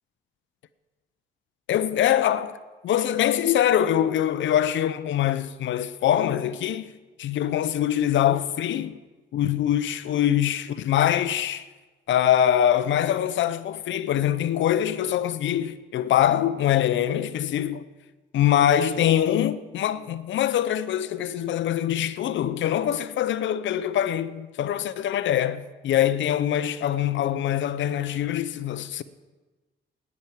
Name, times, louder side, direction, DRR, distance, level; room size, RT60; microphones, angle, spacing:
voice 1, 1.7-2.6 2.8-6.9 7.2-9.0 9.3-11.7 12.1-17.8 18.3-29.0, left 11 dB, 70° left, 0.8 m, -23 dB
10.5 x 9.7 x 8.9 m
cardioid pair, 90°, 20 cm